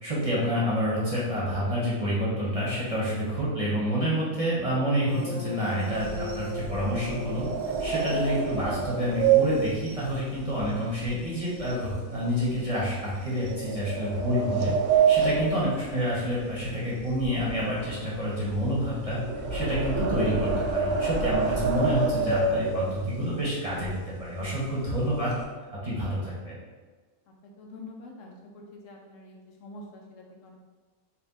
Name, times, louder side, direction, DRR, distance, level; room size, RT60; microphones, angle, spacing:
voice 1, 0.0-7.5 7.8-19.2 19.5-25.3 25.8-26.5, equal, 30° right, -7 dB, 0.9 m, -28 dB
sound 1, 5.1-13.8 15.1-15.3 17.0-17.1, right 1 dB, 80° right, 1.3 m, -41 dB
sound 2, 5.9-11.2 11.5-11.9 12.4-12.5 13.3-16.7 16.9-23.2 23.8-23.9 24.2-24.4 24.8-25.4, right 5 dB, 65° right, 0.8 m, -27 dB
voice 2, 27.6-28.3 28.8-30.6, left 2 dB, 70° left, 0 dB, 0.9 m, -45 dB
4.1 x 2.2 x 4.0 m, 1.4 s
omnidirectional pair, 1.5 m